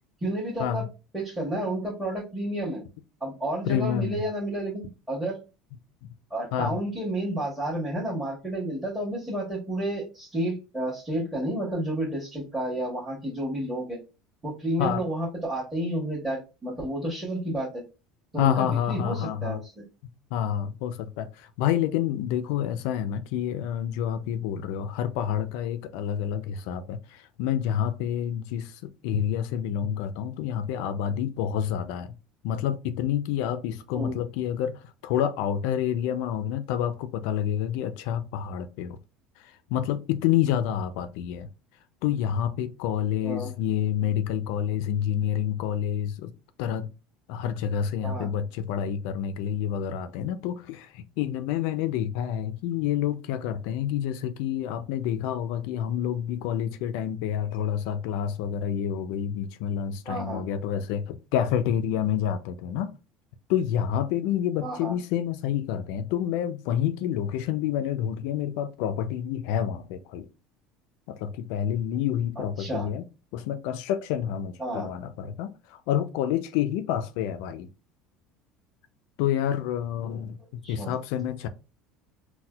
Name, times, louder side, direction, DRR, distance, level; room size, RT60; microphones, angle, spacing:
voice 1, 0.2-0.8 1.1-2.8 3.2-5.4 6.3-14.0 14.4-17.8 18.3-19.9 33.9-34.1 43.2-43.5 48.0-48.3 60.0-60.4 64.6-65.0 72.4-72.9 74.6-74.9 80.6-80.9, right 1 dB, 10° right, 1.0 m, -31 dB
voice 2, 3.7-4.2 6.0-6.1 6.5-6.8 14.8-15.0 18.4-19.6 20.3-32.1 32.4-39.0 39.4-41.5 42.0-46.3 46.6-46.9 47.3-62.9 63.5-70.3 71.1-73.0 73.3-77.7 79.2-80.4 80.7-81.5, left 10 dB, 75° left, 0.3 m, -28 dB
4.1 x 2.1 x 2.3 m
cardioid pair, 150°, 0 cm